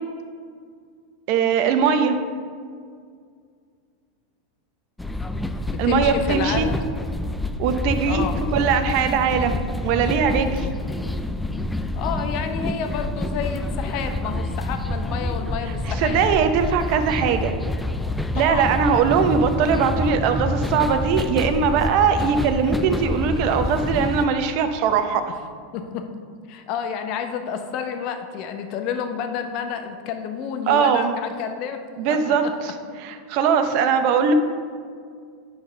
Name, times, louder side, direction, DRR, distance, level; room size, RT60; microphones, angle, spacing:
voice 1, 1.3-2.2 5.8-6.7 7.6-10.7 15.7-17.5 18.3-25.2 30.7-31.1 32.0-34.3, right 6 dB, 60° right, 8 dB, 0.7 m, -21 dB
sound 1, 5.0-24.3, left 1 dB, 5° left, 0.4 m, -27 dB
voice 2, 5.7-6.8 8.0-8.4 11.9-16.2 18.3-18.7 25.7-26.1 26.5-32.5, left 7 dB, 55° left, 6 dB, 0.9 m, -30 dB
9.5 x 4.0 x 5.3 m, 2.1 s
hypercardioid pair, 110°, 0 cm